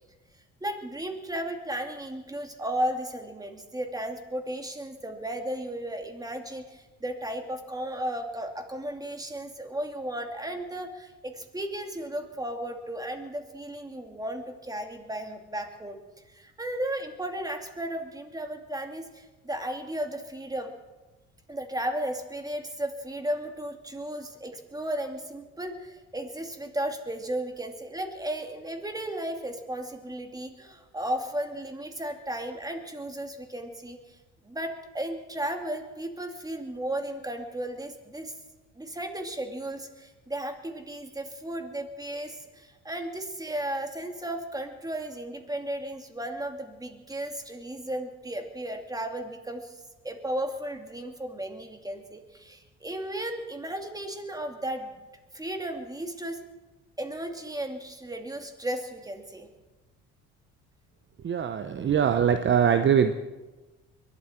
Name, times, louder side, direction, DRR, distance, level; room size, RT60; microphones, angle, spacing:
voice 1, 0.6-16.0 16.3-20.7 21.5-34.2 34.4-38.3 38.8-55.0 55.3-56.4 57.0-59.5, right 1 dB, 10° right, 4 dB, 2.6 m, -34 dB
voice 2, 61.2-63.1, right 8 dB, 40° right, 9 dB, 0.9 m, -22 dB
22.5 x 12.5 x 4.5 m, 1.2 s
supercardioid pair, 70°, 30 cm